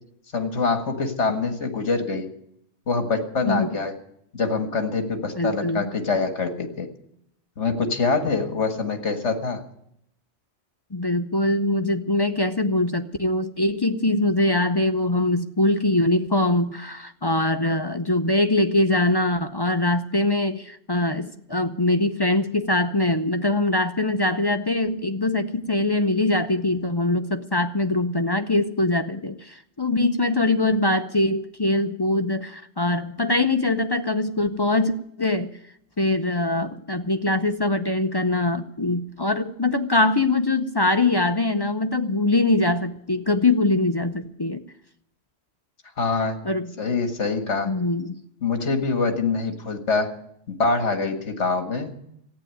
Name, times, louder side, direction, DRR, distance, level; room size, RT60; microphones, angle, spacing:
voice 1, 0.3-2.3 2.9-3.9 4.3-6.9 7.6-9.6 46.0-46.4 46.8-47.7 48.4-50.1 50.5-51.9, left 4 dB, 70° left, 6 dB, 2.0 m, -24 dB
voice 2, 3.5-3.8 5.4-5.9 10.9-35.5 36.0-44.6 46.4-46.7 47.6-48.1, left 2 dB, 30° left, 8 dB, 0.5 m, -23 dB
14.5 x 9.0 x 9.1 m, 0.73 s
omnidirectional pair, 1.2 m